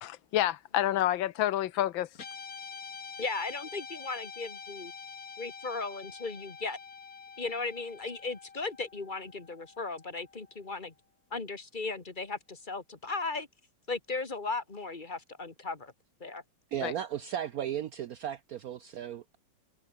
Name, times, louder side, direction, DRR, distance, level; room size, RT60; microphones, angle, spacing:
voice 1, 0.0-2.1 16.8-16.9, left 13 dB, 80° left, 1.6 m, -28 dB
Guitar, 2.1-10.6, left 5 dB, 50° left, 2.3 m, -46 dB
voice 2, 3.2-4.9 5.4-6.8 7.4-10.9 11.3-13.5 13.9-15.9 16.2-16.4, left 3 dB, 25° left, 2.0 m, -36 dB
voice 3, 16.7-19.4, right 10 dB, 65° right, 0.9 m, -35 dB
omnidirectional pair, 2.1 m